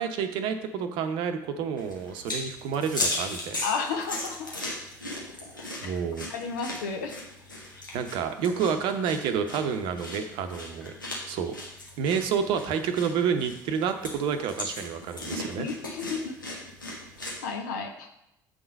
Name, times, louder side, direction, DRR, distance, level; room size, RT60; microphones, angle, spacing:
voice 1, 0.0-3.6 5.8-6.3 7.9-10.9 11.3-11.5 12.0-15.7, right 7 dB, 55° right, 8 dB, 0.7 m, -29 dB
sound 1, 1.8-17.4, left 1 dB, 90° left, 1.4 m, -37 dB
voice 2, 3.6-4.5 5.8-5.9 6.3-7.2 15.6-16.4 17.2-18.1, left 5 dB, 65° left, 5 dB, 0.9 m, -33 dB
7.8 x 3.9 x 5.2 m, 0.85 s
figure-of-eight pair, 55°, 10 cm